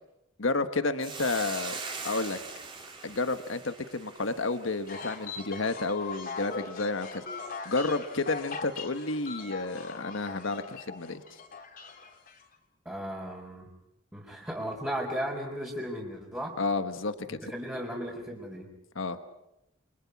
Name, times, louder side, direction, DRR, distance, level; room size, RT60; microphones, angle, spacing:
voice 1, 0.4-2.4 3.0-7.2 7.6-11.4 16.6-17.4 18.9-19.2, left 3 dB, 80° left, 10 dB, 1.4 m, -31 dB
Hiss, 1.0-5.5, right 4 dB, 25° right, 3.7 m, -41 dB
sound 1, 4.9-12.4, left 4 dB, 45° left, 3.3 m, -41 dB
voice 2, 12.8-13.7 14.1-16.6 17.3-18.7, equal, 10° right, -5 dB, 4.3 m, -36 dB
29.0 x 25.0 x 6.0 m, 0.86 s
head